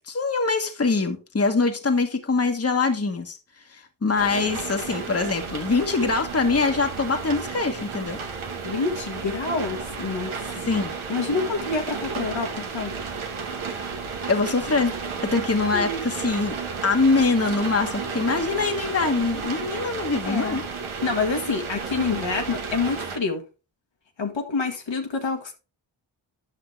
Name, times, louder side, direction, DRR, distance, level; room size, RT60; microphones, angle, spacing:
voice 1, 0.1-3.4 3.7-8.2 10.7-10.9 13.7-13.8 14.3-14.9 15.2-16.6 16.8-20.6, left 4 dB, 30° left, 1.3 m, -23 dB
sound 1, 4.2-23.2, right 5 dB, 80° right, 1.2 m, -33 dB
voice 2, 8.6-10.6 11.1-12.9 15.7-16.0 20.2-20.6 21.0-23.4 24.2-25.5, left 4 dB, 65° left, 1.6 m, -27 dB
9.3 x 5.9 x 3.3 m
cardioid pair, 40°, 48 cm